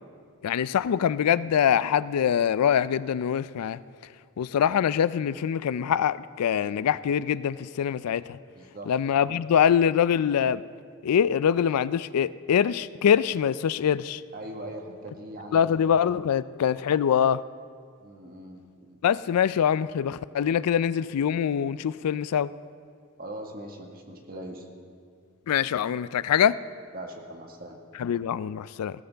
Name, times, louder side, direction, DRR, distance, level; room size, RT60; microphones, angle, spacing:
voice 1, 0.4-3.8 4.4-8.4 8.9-10.6 11.0-14.2 15.5-17.4 19.0-22.5 25.5-26.6 28.0-28.9, left 8 dB, 90° left, 17 dB, 0.4 m, -24 dB
voice 2, 8.5-9.4 14.3-15.9 18.0-19.0 23.2-24.7 26.9-27.8, right 1 dB, 40° right, 2 dB, 1.6 m, -41 dB
19.0 x 15.5 x 3.4 m, 2.1 s
head